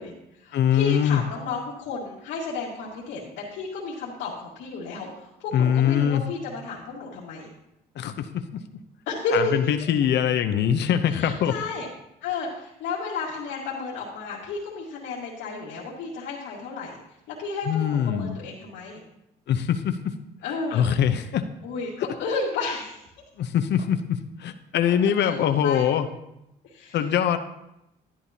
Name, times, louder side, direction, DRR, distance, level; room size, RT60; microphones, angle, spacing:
voice 1, 0.0-7.5 9.1-9.7 11.1-11.9 12.2-17.0 17.3-19.0 20.4-20.8 21.6-23.2 24.9-25.9 26.6-27.0, left 3 dB, 90° left, -6 dB, 1.9 m, -32 dB
voice 2, 0.5-1.2 5.5-6.2 8.0-8.3 9.3-11.5 17.7-18.4 19.5-20.1 20.7-21.4 22.0-22.1 23.4-26.1 26.9-27.4, left 9 dB, 65° left, 7 dB, 0.8 m, -23 dB
11.5 x 11.0 x 2.9 m, 0.86 s
cardioid pair, 95°, 19 cm